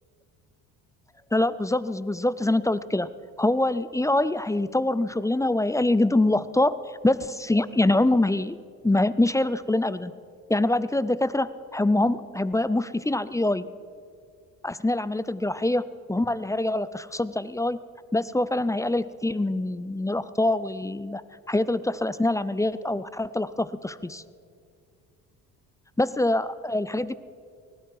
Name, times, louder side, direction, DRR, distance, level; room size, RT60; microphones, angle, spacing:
voice 1, 1.3-3.1 3.4-6.8 7.0-8.6 8.8-10.1 10.5-13.7 14.6-17.8 18.1-21.2 21.5-24.2 26.0-27.1, left 2 dB, 10° left, 17 dB, 0.5 m, -24 dB
19.5 x 14.0 x 4.8 m, 2.3 s
supercardioid pair, 65°, 42 cm